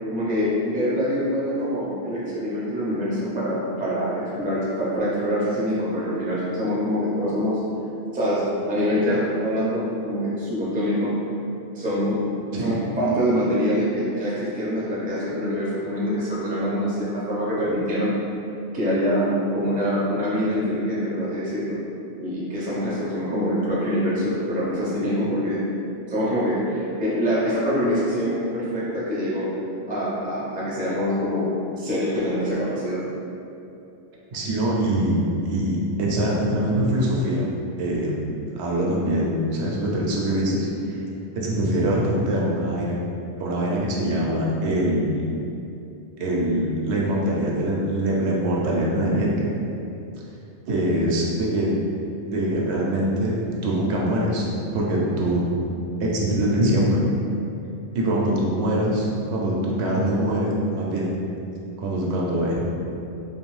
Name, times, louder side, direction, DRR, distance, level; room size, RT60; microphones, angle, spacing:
voice 1, 0.1-7.6 8.1-11.1 11.7-12.2 12.6-18.1 18.7-21.8 22.2-25.7 26.1-29.5 29.9-33.0, equal, 15° right, -8 dB, 0.3 m, -25 dB
voice 2, 34.3-37.5 37.8-38.3 38.6-41.0 41.3-43.0 43.4-45.2 46.2-49.5 50.7-51.7 52.2-54.4 54.7-55.4 56.0-57.0 57.9-61.1 61.8-62.7, right 1 dB, 75° right, -4 dB, 0.8 m, -23 dB
2.5 x 2.3 x 3.1 m, 2.7 s
omnidirectional pair, 1.2 m